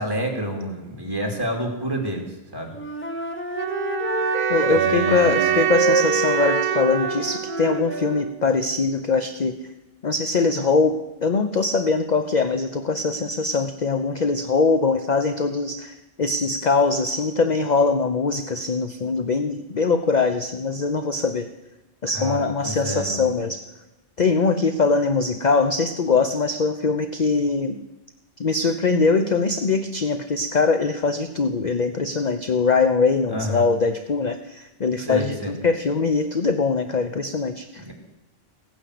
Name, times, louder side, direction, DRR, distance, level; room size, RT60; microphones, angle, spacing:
voice 1, 0.0-2.8 4.7-5.6 22.1-23.3 33.3-33.6 35.0-35.5 37.8-37.9, equal, 20° right, 1 dB, 3.0 m, -29 dB
Wind instrument woodwind instrument, 2.7-8.3, right 1 dB, 10° left, 1.4 m, -27 dB
sound 1, 3.5-8.6, right 11 dB, 85° right, 1.1 m, -25 dB
voice 2, 4.5-9.6 10.0-21.5 22.0-23.6 24.2-27.8 28.4-37.8, left 4 dB, 40° left, 8 dB, 0.8 m, -22 dB
16.0 x 9.7 x 8.4 m, 1.0 s
omnidirectional pair, 1.3 m